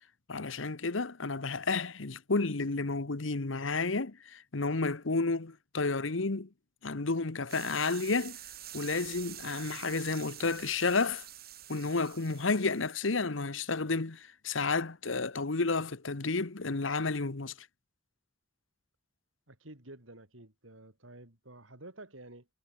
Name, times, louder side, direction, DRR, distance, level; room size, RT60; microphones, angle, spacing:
voice 1, 0.3-6.5 6.8-8.4 8.7-11.3 11.7-17.5, left 3 dB, 75° left, 1.2 m, -31 dB
sound 1, 7.5-13.0, right 12 dB, 55° right, 7.8 m, -47 dB
voice 2, 19.5-22.5, right 2 dB, 85° right, 6.0 m, -50 dB
head